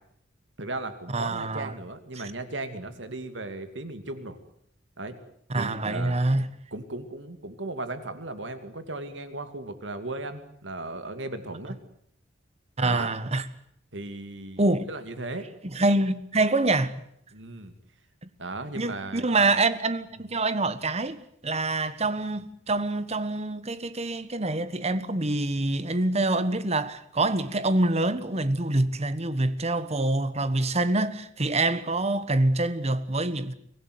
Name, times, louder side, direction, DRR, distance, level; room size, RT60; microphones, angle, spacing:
voice 1, 0.6-4.4 5.0-5.2 5.5-6.2 6.7-11.8 12.8-13.1 13.9-14.6 14.9-15.5 17.3-17.7 18.4-19.5 20.2-20.3, right 2 dB, 80° right, 2.6 m, -36 dB
voice 2, 1.1-1.7 5.5-6.5 12.8-13.4 14.6-14.9 15.7-17.0 18.2-18.3 18.7-33.5, right 2 dB, 35° right, 1.3 m, -26 dB
24.0 x 17.0 x 9.4 m
head